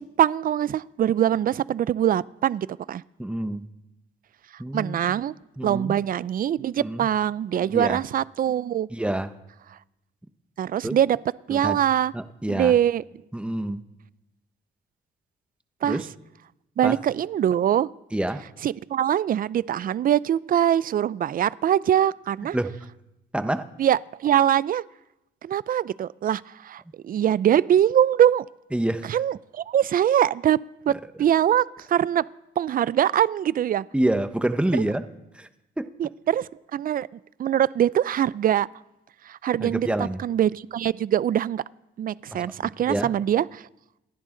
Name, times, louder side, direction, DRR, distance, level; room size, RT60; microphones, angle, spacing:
voice 1, 0.0-3.0 4.5-5.3 5.6-8.9 10.6-11.2 11.5-12.1 12.5-13.0 15.8-16.0 16.8-17.9 18.6-22.6 23.8-24.8 25.4-28.4 29.0-30.6 30.9-32.2 32.6-33.8 36.0-37.1 37.4-38.7 39.2-41.6 42.0-43.7, right 10 dB, 45° right, 0.4 m, -23 dB
voice 2, 3.2-3.7 4.6-5.2 5.6-6.0 6.8-7.1 7.7-8.0 8.9-9.3 10.8-11.0 11.5-11.8 12.1-12.7 13.3-13.8 15.8-16.1 16.8-17.0 18.1-18.4 22.5-22.7 23.3-23.7 28.7-29.1 33.9-35.0 35.3-35.5 35.8-35.9 39.6-40.2 42.3-43.1, right 1 dB, 5° right, 1.0 m, -27 dB
27.5 x 10.5 x 3.9 m
cardioid pair, 90°, 20 cm